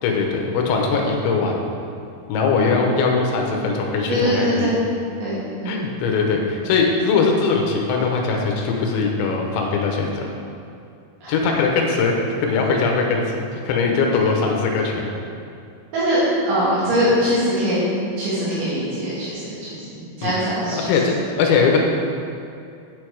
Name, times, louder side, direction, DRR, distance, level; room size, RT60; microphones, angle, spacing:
voice 1, 0.0-1.6 2.3-4.7 5.7-10.3 11.3-15.1 20.2-20.3 20.7-21.8, left 4 dB, 80° left, 1 dB, 3.2 m, -21 dB
voice 2, 4.1-4.8 5.2-5.8 11.2-11.5 15.9-17.8 18.2-20.9, equal, 70° right, -11 dB, 4.6 m, -22 dB
9.3 x 6.8 x 4.7 m, 2.6 s
omnidirectional pair, 5.4 m